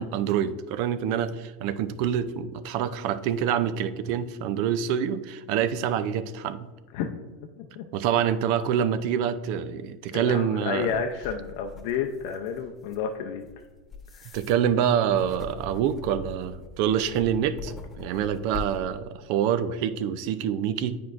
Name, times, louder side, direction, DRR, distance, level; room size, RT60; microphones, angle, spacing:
voice 1, 0.0-6.7 7.9-10.9 14.3-20.9, right 9 dB, 60° right, 14 dB, 0.4 m, -26 dB
voice 2, 10.1-13.5 14.1-14.4, left 7 dB, 60° left, 3 dB, 0.5 m, -31 dB
sound 1, 10.8-18.8, left 4 dB, 25° left, 1.2 m, -42 dB
9.2 x 4.6 x 2.5 m, 1.3 s
hypercardioid pair, 90°, 0 cm